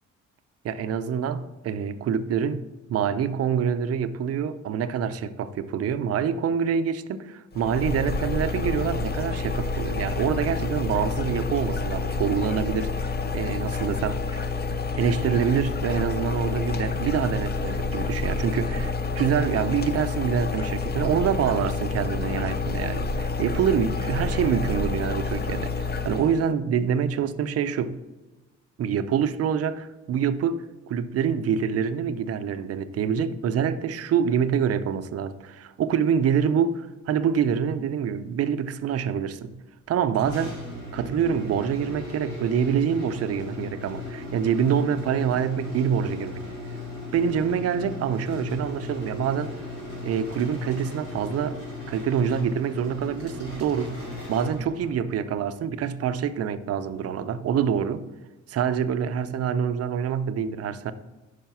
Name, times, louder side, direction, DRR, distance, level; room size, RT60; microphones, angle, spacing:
voice 1, 0.6-14.4 15.0-28.0 28.8-39.6 39.9-40.6 40.9-46.4 47.1-49.6 50.0-51.6 51.9-58.1 58.5-60.9, right 7 dB, 55° right, 0.5 m, -26 dB
sound 1, 7.5-26.5, left 4 dB, 35° left, 0.6 m, -28 dB
sound 2, 40.1-55.1, left 2 dB, 90° left, 2.6 m, -37 dB
5.5 x 5.0 x 5.8 m
cardioid pair, 90°, 30 cm